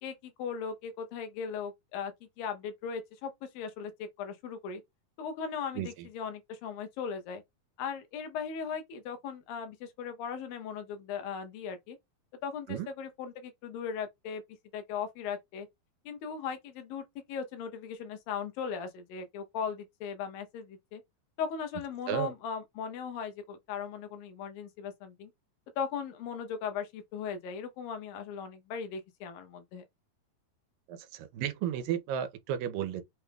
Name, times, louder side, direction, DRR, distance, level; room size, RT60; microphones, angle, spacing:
voice 1, 0.0-4.8 5.2-7.4 7.8-12.0 12.4-14.4 14.7-15.7 16.1-21.0 21.4-25.3 25.8-29.8, left 6 dB, 90° left, 2.7 m, -38 dB
voice 2, 30.9-33.0, right 9 dB, 90° right, 2.3 m, -33 dB
6.0 x 2.3 x 3.4 m
omnidirectional pair, 4.0 m